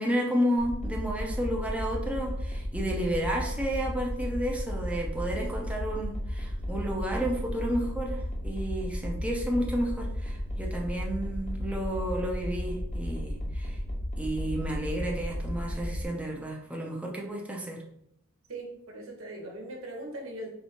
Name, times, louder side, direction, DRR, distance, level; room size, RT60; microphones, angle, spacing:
voice 1, 0.0-13.8 14.2-17.8, equal, 5° right, -1 dB, 0.6 m, -31 dB
sound 1, 0.6-16.1, equal, 35° left, 0.8 m, -34 dB
voice 2, 18.5-20.5, right 1 dB, 85° right, 0 dB, 1.1 m, -40 dB
4.3 x 3.3 x 2.9 m, 0.74 s
head